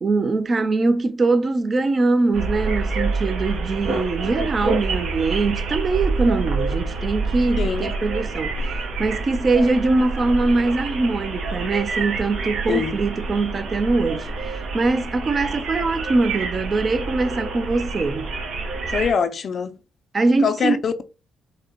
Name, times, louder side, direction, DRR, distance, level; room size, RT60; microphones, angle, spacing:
voice 1, 0.0-18.3 20.1-20.8, right 3 dB, 35° right, 0.5 m, -22 dB
sound 1, 2.3-19.1, right 3 dB, 70° right, 1.1 m, -27 dB
voice 2, 18.9-19.7 20.4-21.0, left 6 dB, 55° left, 0.4 m, -23 dB
4.8 x 2.1 x 3.0 m
cardioid pair, 90°, 0 cm